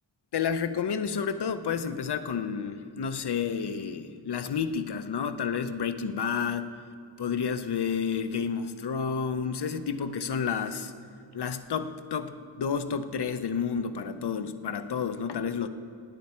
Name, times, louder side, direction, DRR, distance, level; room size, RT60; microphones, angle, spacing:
voice 1, 0.3-6.7 7.2-10.9 11.3-15.7, left 6 dB, 55° left, 10 dB, 0.8 m, -30 dB
17.5 x 9.4 x 4.4 m, 2.6 s
wide cardioid pair, 90°, 49 cm